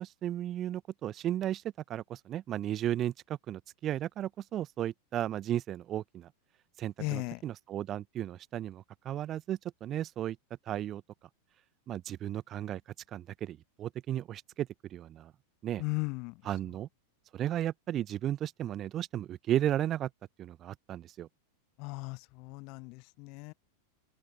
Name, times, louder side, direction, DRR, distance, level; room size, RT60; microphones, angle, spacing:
voice 1, 0.0-1.6 1.9-6.3 6.8-10.4 10.7-11.0 11.9-12.8 13.1-15.3 15.6-15.8 16.4-16.9 17.3-20.1 20.4-21.3, right 12 dB, 30° right, 0.8 m, -34 dB
voice 2, 7.0-7.4 15.8-16.4 21.8-23.5, left 29 dB, 45° left, 0.8 m, -37 dB
open air
figure-of-eight pair, 90°, 0 cm